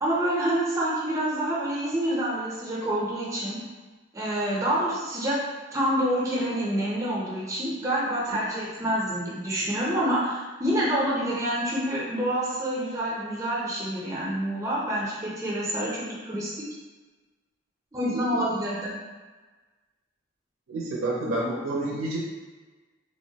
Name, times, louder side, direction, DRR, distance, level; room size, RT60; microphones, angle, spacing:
voice 1, 0.0-3.6 4.1-5.4 5.7-16.5 17.9-18.9, right 1 dB, 15° right, -6 dB, 0.5 m, -27 dB
voice 2, 20.7-22.2, right 2 dB, 85° right, -4 dB, 0.5 m, -29 dB
3.2 x 2.1 x 2.7 m, 1.3 s
head